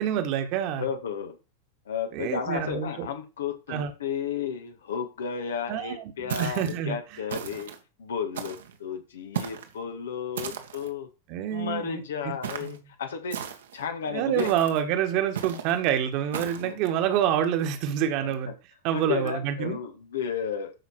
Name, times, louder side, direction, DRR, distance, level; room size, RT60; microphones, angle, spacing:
voice 1, 0.0-0.8 2.1-3.1 3.7-3.9 5.7-7.0 11.3-12.0 12.6-12.8 14.1-18.5 18.8-19.8, right 10 dB, 45° right, 7 dB, 1.8 m, -27 dB
voice 2, 0.8-1.4 1.9-7.7 8.0-11.1 11.5-13.4 13.7-14.5 16.4-16.8 18.2-18.3 18.9-20.7, left 7 dB, 65° left, 6 dB, 2.0 m, -33 dB
sound 1, 6.3-6.8 7.3-7.8 8.3-8.8 9.3-9.7 10.4-10.9 12.4-12.8 13.3-13.8 14.4-14.8 15.3-15.7 16.3-16.7, right 9 dB, 60° right, 1.6 m, -35 dB
13.5 x 5.7 x 4.5 m, 0.31 s
figure-of-eight pair, 90°, 0 cm